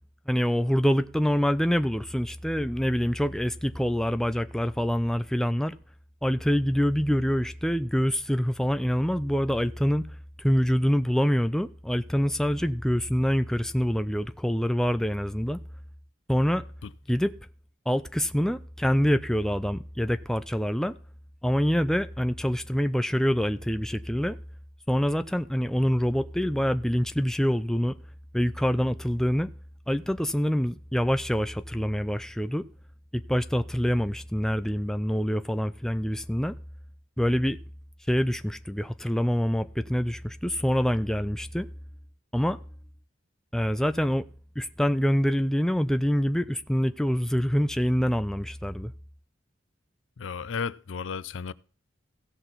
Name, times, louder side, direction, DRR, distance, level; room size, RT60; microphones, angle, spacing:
voice 1, 0.3-5.8 6.2-10.1 10.4-15.6 16.3-16.6 17.1-17.3 17.9-20.9 21.4-24.4 24.9-28.0 28.3-29.5 29.9-32.7 33.1-36.5 37.2-37.6 38.1-41.7 42.3-42.6 43.5-44.3 44.6-48.9, equal, 5° left, 0.4 m, -25 dB
voice 2, 50.2-51.5, left 5 dB, 80° left, 0.5 m, -33 dB
16.5 x 6.0 x 4.0 m
head